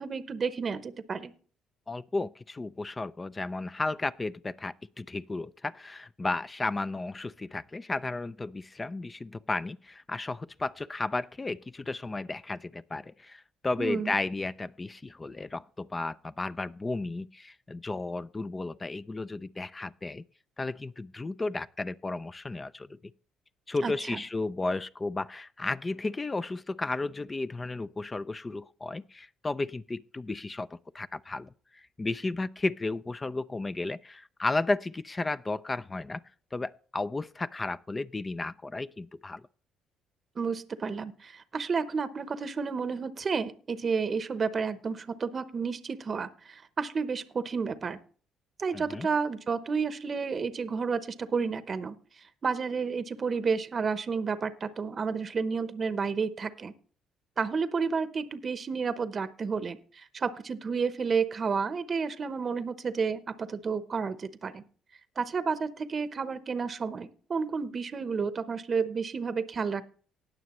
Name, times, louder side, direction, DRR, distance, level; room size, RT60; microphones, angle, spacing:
voice 1, 0.0-1.3 13.8-14.1 23.8-24.2 40.4-48.0 48.6-56.7 57.4-64.6 65.2-69.8, right 5 dB, 45° right, 0.8 m, -31 dB
voice 2, 1.9-20.2 20.6-23.0 23.7-36.2 36.5-39.4 48.7-49.1, left 2 dB, 25° left, 0.4 m, -33 dB
19.0 x 6.4 x 3.0 m
supercardioid pair, 70°, 0 cm